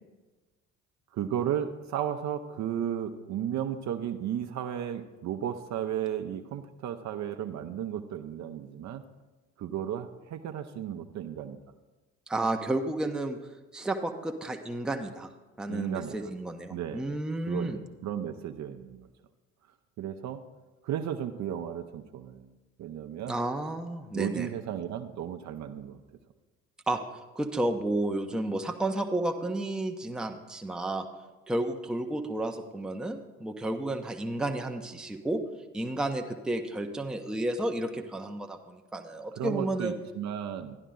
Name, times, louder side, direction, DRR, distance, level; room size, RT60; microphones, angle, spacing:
voice 1, 1.1-9.0 9.6-11.6 15.7-16.3 16.7-17.1 17.5-19.1 20.0-20.4 20.8-22.5 22.8-23.3 24.1-26.0 39.3-40.8, right 10 dB, 40° right, 7 dB, 0.8 m, -34 dB
voice 2, 12.3-13.4 13.7-15.3 15.6-17.8 23.3-24.5 26.9-27.0 27.3-31.1 31.5-35.4 35.7-39.9, right 1 dB, ahead, 4 dB, 0.7 m, -31 dB
12.0 x 11.0 x 3.8 m, 1.2 s
figure-of-eight pair, 55°, 41 cm